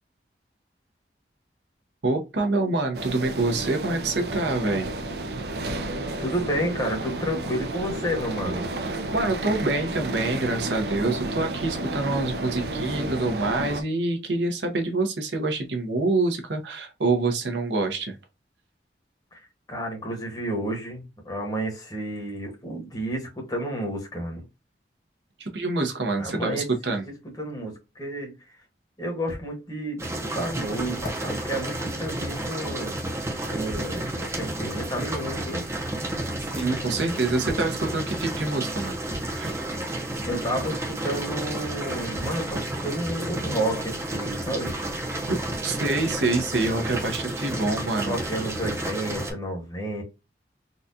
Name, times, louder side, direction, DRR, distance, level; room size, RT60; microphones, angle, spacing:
voice 1, 2.0-4.9 8.9-18.2 25.4-27.0 36.4-39.0 39.3-39.5 45.3-48.1, right 2 dB, 85° right, 0.9 m, -26 dB
sound 1, 2.9-13.8, right 2 dB, 65° right, 0.6 m, -31 dB
voice 2, 6.2-8.7 19.3-19.4 19.7-24.4 26.2-27.0 27.4-28.3 29.0-33.0 33.5-35.6 40.2-44.8 47.9-50.0, right 1 dB, 20° left, 1.1 m, -31 dB
sound 2, 29.3-29.5 30.1-30.2 30.9-32.8 33.7-34.0 35.2-35.3 36.6-36.7 37.4-37.8 39.1-39.3 41.0-41.1 42.1-42.5 43.2-43.4, equal, 55° left, 1.1 m, -41 dB
sound 3, 30.0-49.3, right 1 dB, 15° right, 0.6 m, -31 dB
4.0 x 2.3 x 2.6 m
head